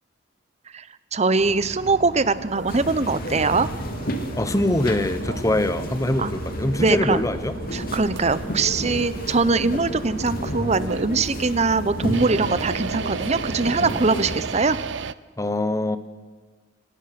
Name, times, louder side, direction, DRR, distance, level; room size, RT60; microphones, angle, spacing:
voice 1, 1.1-3.7 6.2-6.3 6.8-7.2 7.7-14.8, right 3 dB, 35° right, 15 dB, 0.9 m, -22 dB
sound 1, 1.4-15.1, right 5 dB, 75° right, 0.6 m, -36 dB
sound 2, 2.7-14.4, equal, 50° left, 2.2 m, -31 dB
voice 2, 4.4-7.5 15.4-16.0, left 1 dB, 15° left, 12 dB, 1.1 m, -23 dB
24.5 x 19.5 x 6.0 m, 1.5 s
head